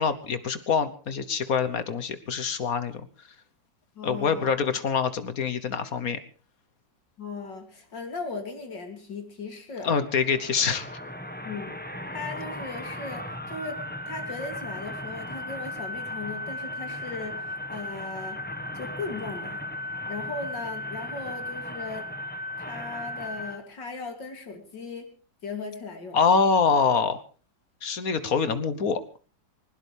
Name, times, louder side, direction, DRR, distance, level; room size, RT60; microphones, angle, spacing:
voice 1, 0.0-3.0 4.0-6.2 9.8-10.9 26.1-27.2 27.8-29.0, left 5 dB, 55° left, 12 dB, 1.5 m, -25 dB
voice 2, 4.0-4.5 7.2-9.9 11.4-11.7 12.1-18.4 18.7-19.6 20.1-22.1 22.6-25.1 25.4-26.2, left 4 dB, 75° left, 4 dB, 3.7 m, -37 dB
sound 1, 9.9-23.6, left 1 dB, 5° left, 1.3 m, -36 dB
21.0 x 19.5 x 3.4 m, 0.37 s
omnidirectional pair, 1.9 m